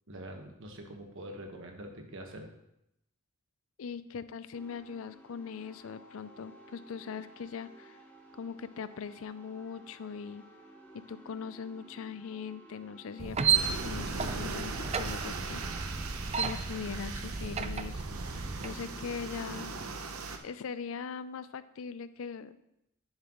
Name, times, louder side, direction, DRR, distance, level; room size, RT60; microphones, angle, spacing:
voice 1, 0.1-2.5, right 1 dB, 65° right, 3 dB, 1.3 m, -44 dB
voice 2, 3.8-8.0 8.3-10.5 10.9-16.0 16.3-18.0 18.6-19.7 20.4-22.6, left 6 dB, 65° left, 14 dB, 0.4 m, -41 dB
sound 1, 4.5-16.5, right 1 dB, 10° left, 1.1 m, -55 dB
sound 2, 13.2-18.7, right 6 dB, 30° right, 0.4 m, -33 dB
sound 3, 13.5-20.4, right 4 dB, 85° right, 0.8 m, -40 dB
10.5 x 7.4 x 3.0 m, 0.81 s
head